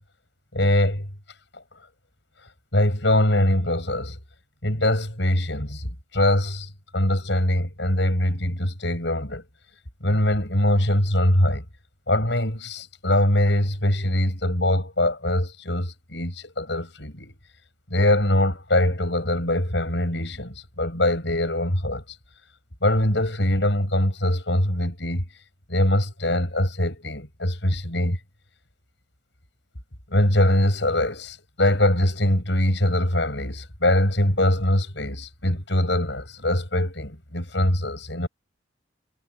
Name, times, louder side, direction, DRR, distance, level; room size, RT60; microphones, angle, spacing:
voice 1, 0.5-1.1 2.7-4.2 4.6-9.4 10.0-11.6 12.1-17.3 17.9-22.0 22.8-25.2 25.7-28.2 30.1-38.3, left 1 dB, 65° left, 7.9 m, -23 dB
head